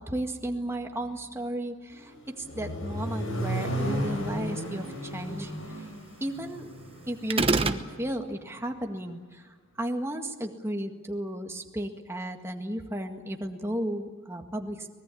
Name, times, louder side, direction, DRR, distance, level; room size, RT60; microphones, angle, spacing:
voice 1, 0.0-5.9 6.2-6.8 7.1-14.9, right 1 dB, 15° right, 4 dB, 1.9 m, -34 dB
Accelerating revving vroom, 1.9-7.9, equal, 90° left, 6.5 m, -34 dB
sound 1, 7.3-7.8, right 3 dB, 30° right, 1.0 m, -24 dB
24.5 x 20.0 x 8.5 m, 1.5 s
head